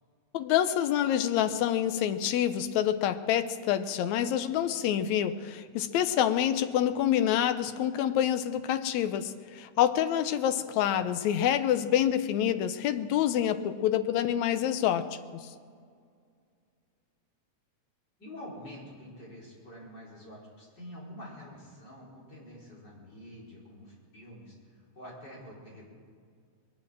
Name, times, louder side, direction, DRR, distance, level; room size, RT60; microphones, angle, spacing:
voice 1, 0.3-15.5, left 10 dB, 75° left, 11 dB, 2.0 m, -27 dB
voice 2, 18.2-25.9, left 1 dB, 35° left, -5 dB, 5.0 m, -47 dB
22.0 x 8.6 x 7.4 m, 2.1 s
omnidirectional pair, 3.4 m